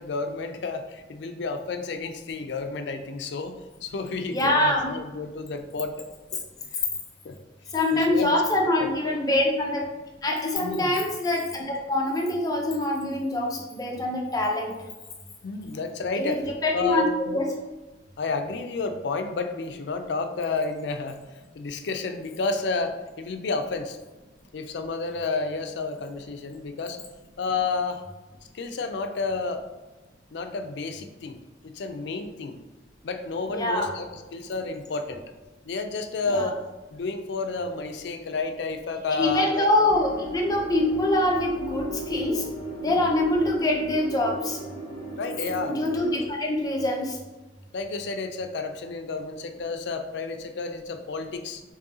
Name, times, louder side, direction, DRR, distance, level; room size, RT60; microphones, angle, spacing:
voice 1, 0.0-6.1 6.3-6.4 7.2-7.4 7.9-8.3 8.8-9.1 10.6-10.9 15.4-16.4 16.7-17.4 18.2-21.2 21.5-24.0 24.5-27.0 27.4-28.0 28.5-29.6 30.3-31.4 31.6-32.6 33.0-34.1 34.3-35.2 35.7-36.6 36.9-39.7 42.8-43.0 45.2-45.9 47.7-51.6, left 3 dB, 65° left, 7 dB, 0.4 m, -31 dB
voice 2, 4.3-4.9 7.7-9.8 10.2-14.8 16.2-17.1 17.3-17.5 33.5-33.9 36.3-36.5 39.2-42.5 42.8-44.6 45.7-47.2, left 1 dB, 20° left, 0 dB, 0.6 m, -24 dB
sound 1, 39.9-46.3, right 1 dB, 5° left, 1.5 m, -37 dB
6.3 x 2.7 x 2.7 m, 1.2 s
head